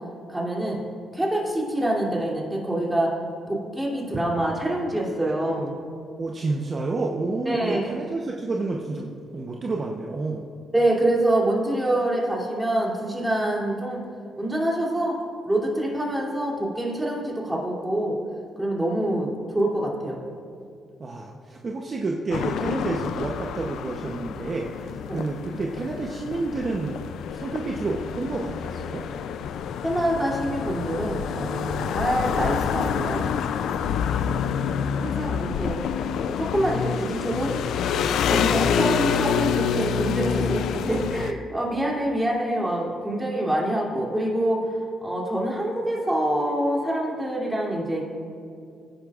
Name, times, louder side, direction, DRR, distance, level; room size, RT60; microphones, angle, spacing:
voice 1, 0.3-0.8 1.1-3.1 3.5-5.7 7.4-8.0 10.7-14.0 14.4-15.2 15.4-18.2 18.6-20.2 25.1-25.2 29.8-33.3 35.0-35.8 36.2-37.5 38.3-44.8 45.0-48.1, right 1 dB, 10° right, -4 dB, 3.0 m, -25 dB
voice 2, 6.2-10.5 21.0-27.0 27.3-29.1 33.7-34.2 40.3-40.4, right 3 dB, 40° right, 0 dB, 0.9 m, -30 dB
sound 1, 22.3-41.3, left 7 dB, 75° left, 0.4 m, -27 dB
18.5 x 10.5 x 2.5 m, 2.4 s
cardioid pair, 90°, 0 cm